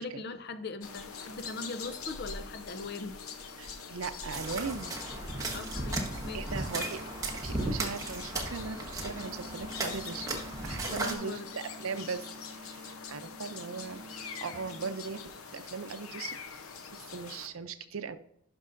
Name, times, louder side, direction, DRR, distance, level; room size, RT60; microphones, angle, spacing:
voice 1, 0.0-3.2 5.5-6.5 10.9-11.5, left 3 dB, 50° left, 0.5 m, -40 dB
sound 1, 0.8-17.5, left 5 dB, 85° left, 0.8 m, -44 dB
voice 2, 3.6-5.0 6.3-12.2 12.5-16.4 16.9-18.2, right 5 dB, 75° right, 0.6 m, -39 dB
sound 2, 4.3-11.1, right 2 dB, 15° right, 1.1 m, -36 dB
sound 3, 5.1-15.1, right 1 dB, 40° right, 1.8 m, -50 dB
12.0 x 5.3 x 2.6 m
head